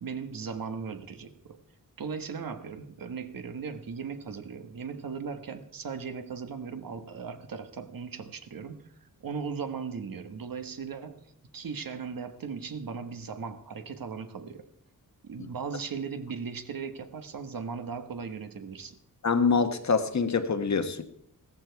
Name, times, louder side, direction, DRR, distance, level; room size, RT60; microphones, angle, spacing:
voice 1, 0.0-1.6 2.0-11.2 11.5-14.7 15.2-19.0, right 5 dB, 75° right, 8 dB, 1.3 m, -38 dB
voice 2, 19.2-21.0, left 5 dB, 50° left, 9 dB, 1.2 m, -25 dB
15.0 x 13.5 x 4.7 m, 0.71 s
wide cardioid pair, 90°, 34 cm